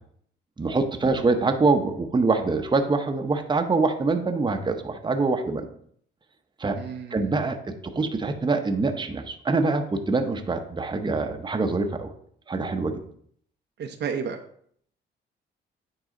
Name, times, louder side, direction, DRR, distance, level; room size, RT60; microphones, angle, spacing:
voice 1, 0.6-5.7 6.6-6.8 7.1-12.1 12.5-13.0, right 3 dB, 20° right, 6 dB, 0.8 m, -24 dB
voice 2, 6.7-7.3 13.8-14.4, right 6 dB, 60° right, 6 dB, 0.7 m, -32 dB
9.6 x 4.0 x 3.8 m, 0.64 s
cardioid pair, 90°, 20 cm